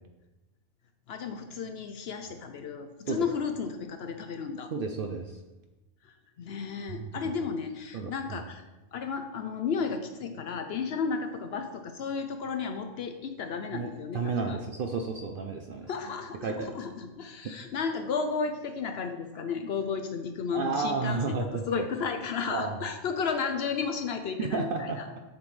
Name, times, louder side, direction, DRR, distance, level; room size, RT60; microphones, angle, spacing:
voice 1, 1.1-4.7 6.0-8.6 8.9-14.6 15.9-25.1, left 5 dB, 65° left, 7 dB, 0.7 m, -33 dB
voice 2, 4.7-5.4 6.9-7.3 7.9-8.4 13.7-15.9 16.4-16.7 20.5-21.6 22.5-22.8 24.4-25.0, right 4 dB, 60° right, 4 dB, 0.6 m, -32 dB
7.4 x 5.9 x 3.2 m, 1.1 s
omnidirectional pair, 1.3 m